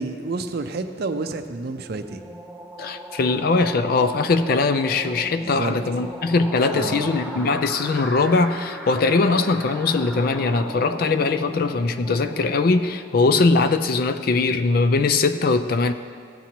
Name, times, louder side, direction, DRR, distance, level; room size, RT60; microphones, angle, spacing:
voice 1, 0.0-2.2 5.4-5.8 6.7-7.1, right 3 dB, 55° right, 8 dB, 0.5 m, -29 dB
sound 1, 1.2-13.6, equal, ahead, 0.6 m, -37 dB
voice 2, 2.8-15.9, left 3 dB, 50° left, 10 dB, 0.4 m, -21 dB
15.5 x 7.4 x 2.9 m, 2.1 s
head